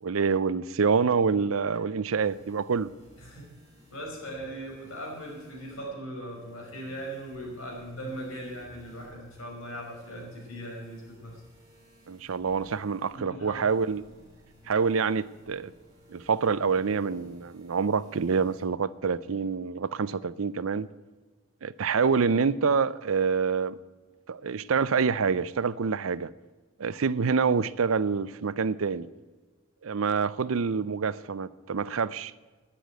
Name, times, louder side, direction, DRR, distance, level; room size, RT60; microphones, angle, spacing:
voice 1, 0.0-2.9 12.1-14.0 14.7-15.7 16.1-20.9 21.6-23.8 24.3-26.3 26.8-29.1 29.8-32.3, right 5 dB, 75° right, 0.6 m, -26 dB
sound 1, 2.2-18.6, equal, 20° right, 4.8 m, -57 dB
voice 2, 3.2-3.5 3.9-11.4 13.1-13.7 24.3-24.4, right 1 dB, 80° left, 5.6 m, -39 dB
11.5 x 10.0 x 9.0 m
head